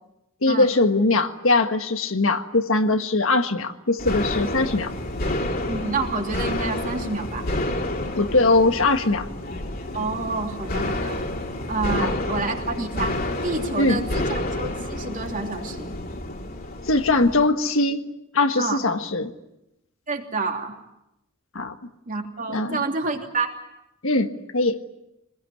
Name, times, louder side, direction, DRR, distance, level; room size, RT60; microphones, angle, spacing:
voice 1, 0.4-4.9 8.1-9.3 12.0-12.1 13.8-14.1 16.9-18.0 18.3-19.3 21.5-21.7 22.5-22.8 24.0-24.8, left 2 dB, 65° left, 8 dB, 1.6 m, -21 dB
sound 1, 4.0-17.5, left 1 dB, 40° left, 2.9 m, -29 dB
voice 2, 5.7-7.5 9.9-11.2 11.7-13.2 13.4-15.9 18.6-18.8 20.1-20.7 22.1-23.5, right 3 dB, 40° right, 3 dB, 3.2 m, -28 dB
26.0 x 20.5 x 9.8 m, 0.89 s
head